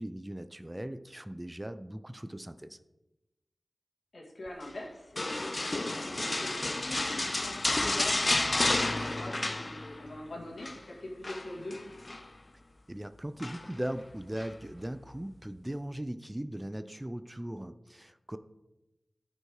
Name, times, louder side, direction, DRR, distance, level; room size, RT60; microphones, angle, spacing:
voice 1, 0.0-2.8 12.9-18.4, right 1 dB, 15° right, 11 dB, 0.5 m, -39 dB
voice 2, 4.1-11.8, left 1 dB, 70° left, 0 dB, 2.2 m, -43 dB
sound 1, 5.2-10.2 10.4-10.8 11.2-12.3 13.4-13.9 14.4-14.5, left 2 dB, 35° left, 0.6 m, -31 dB
13.0 x 5.4 x 4.8 m, 0.98 s
wide cardioid pair, 85°, 0 cm